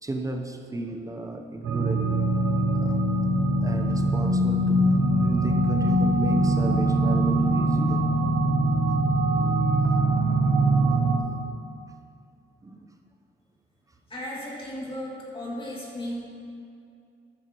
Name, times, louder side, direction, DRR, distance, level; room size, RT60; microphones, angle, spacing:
voice 1, 0.0-2.1 2.7-3.0 3.6-8.1 12.6-12.9, right 1 dB, 15° right, 3 dB, 0.9 m, -35 dB
sound 1, 1.6-11.2, right 1 dB, 85° right, 1.3 m, -22 dB
voice 2, 14.1-16.2, left 1 dB, 25° left, -5 dB, 2.7 m, -35 dB
13.5 x 10.5 x 3.1 m, 2.4 s
cardioid pair, 90°, 20 cm